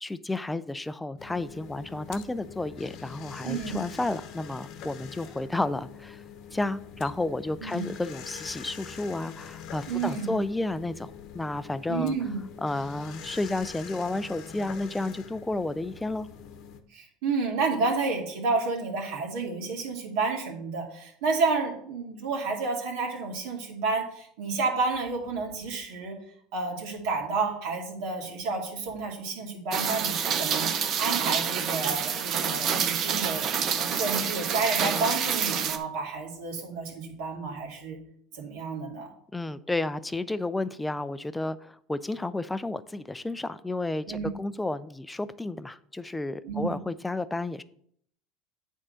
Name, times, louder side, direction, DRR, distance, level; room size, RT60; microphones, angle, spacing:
voice 1, 0.0-6.2 6.5-12.2 12.6-16.3 39.3-47.6, left 2 dB, 10° left, 15 dB, 0.4 m, -32 dB
sound 1, 1.2-16.8, left 8 dB, 55° left, 0.9 m, -44 dB
voice 2, 3.4-3.9 7.6-7.9 9.9-10.4 11.9-12.4 16.9-26.1 26.5-30.7 31.0-33.4 33.8-38.0 38.3-39.1 44.1-44.3 46.4-46.7, right 4 dB, 75° right, 0 dB, 2.3 m, -30 dB
Rain, 29.7-35.8, right 7 dB, 45° right, 0.8 m, -27 dB
8.8 x 3.7 x 6.4 m, 0.66 s
supercardioid pair, 110°, 0 cm